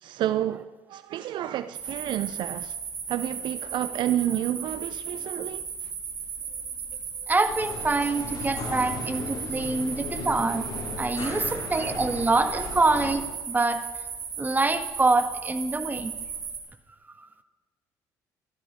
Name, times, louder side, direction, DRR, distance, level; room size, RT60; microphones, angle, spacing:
voice 1, 0.0-2.8 3.1-5.9 11.1-11.4 12.5-12.6, right 12 dB, 65° right, 0.5 m, -30 dB
sound 1, 1.7-16.6, right 6 dB, 90° right, 3.2 m, -36 dB
voice 2, 7.3-10.7 11.0-13.9 14.4-16.2 17.2-17.3, right 3 dB, 20° right, 1.7 m, -25 dB
sound 2, 7.4-13.1, left 3 dB, 55° left, 5.3 m, -36 dB
16.5 x 13.0 x 5.1 m
hypercardioid pair, 60°, 9 cm